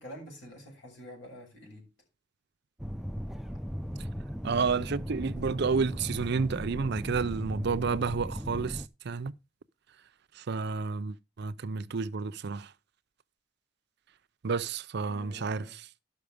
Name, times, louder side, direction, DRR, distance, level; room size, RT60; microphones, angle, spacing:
voice 1, 0.0-1.9 15.1-15.8, equal, 70° left, 6.6 m, -47 dB
sound 1, 2.8-8.9, equal, ahead, 0.5 m, -37 dB
voice 2, 4.4-9.3 10.4-12.7 14.4-15.7, right 5 dB, 60° right, 0.5 m, -30 dB
12.0 x 5.9 x 5.0 m
head